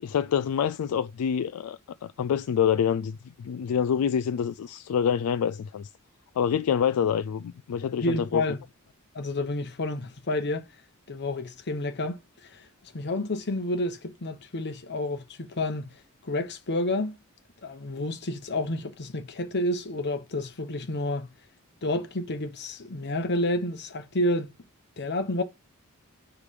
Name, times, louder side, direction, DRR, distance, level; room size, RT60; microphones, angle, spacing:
voice 1, 0.0-5.9 6.4-8.4, left 8 dB, 70° left, 0.3 m, -26 dB
voice 2, 8.0-8.6 9.1-10.7 11.1-15.9 16.2-17.2 17.6-21.3 21.8-24.5 25.0-25.4, left 1 dB, 50° left, 1.0 m, -30 dB
5.0 x 4.8 x 5.1 m
head